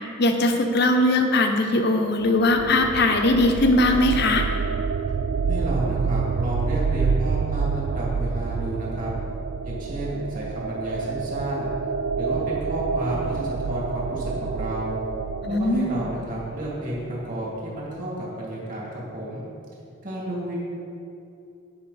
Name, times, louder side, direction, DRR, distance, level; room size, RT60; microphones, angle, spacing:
voice 1, 0.2-4.5 15.4-16.0, left 2 dB, 55° left, 4 dB, 0.9 m, -20 dB
sound 1, 2.3-17.1, right 5 dB, 60° right, 0.3 m, -28 dB
voice 2, 5.5-9.1 9.6-11.7 12.1-15.0 15.5-19.4 20.0-20.6, right 1 dB, 45° right, -5 dB, 2.5 m, -31 dB
16.5 x 5.8 x 4.3 m, 2.8 s
head